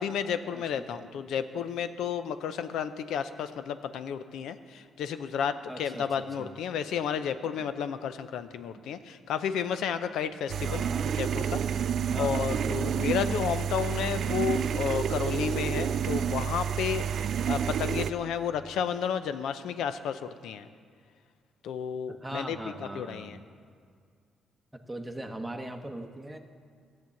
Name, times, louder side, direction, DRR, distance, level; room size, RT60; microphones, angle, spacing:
voice 1, 0.0-10.8 11.2-11.9 12.2-17.1 17.5-20.7 21.6-23.4, left 8 dB, 80° left, 11 dB, 0.6 m, -32 dB
voice 2, 0.5-1.1 1.5-1.6 5.7-6.5 10.6-11.1 12.1-13.4 22.2-23.4 24.9-26.4, right 1 dB, 5° right, 3 dB, 1.0 m, -40 dB
sound 1, 10.5-18.1, right 8 dB, 65° right, 0.4 m, -29 dB
13.5 x 7.7 x 7.0 m, 2.2 s
cardioid pair, 90°, 0 cm